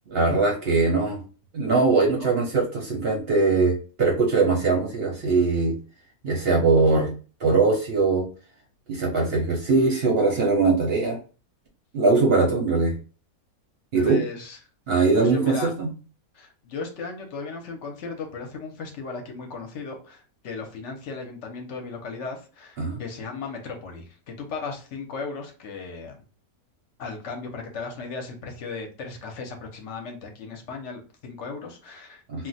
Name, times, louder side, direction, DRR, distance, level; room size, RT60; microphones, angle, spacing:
voice 1, 0.1-1.2 1.5-5.7 6.2-7.1 7.4-8.3 8.9-11.2 11.9-12.9 13.9-14.2 14.9-15.9 22.8-23.0 32.3-32.4, right 3 dB, 55° right, 0 dB, 0.8 m, -21 dB
voice 2, 14.0-14.6 15.1-15.7 16.3-26.2 27.0-32.5, left 4 dB, 60° left, 3 dB, 0.9 m, -36 dB
2.4 x 2.1 x 3.9 m, 0.36 s
omnidirectional pair, 1.6 m